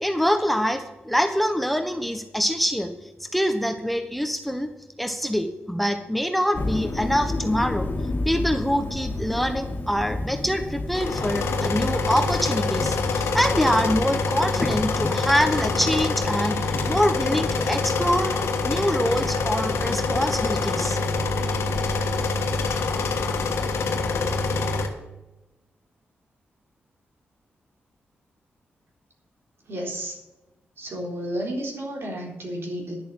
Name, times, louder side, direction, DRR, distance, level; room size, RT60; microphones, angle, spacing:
voice 1, 0.0-2.9 3.3-4.7 5.0-7.9 8.2-16.6 16.8-18.3 18.6-21.0, equal, ahead, 8 dB, 1.2 m, -25 dB
sound 1, 6.5-24.6, left 2 dB, 45° left, 2.1 m, -33 dB
sound 2, 10.9-24.9, left 3 dB, 85° left, 1.5 m, -25 dB
voice 2, 29.7-30.2 30.8-32.9, right 1 dB, 65° right, 0 dB, 3.8 m, -31 dB
11.0 x 7.1 x 7.5 m, 1.0 s
cardioid pair, 60°, 4 cm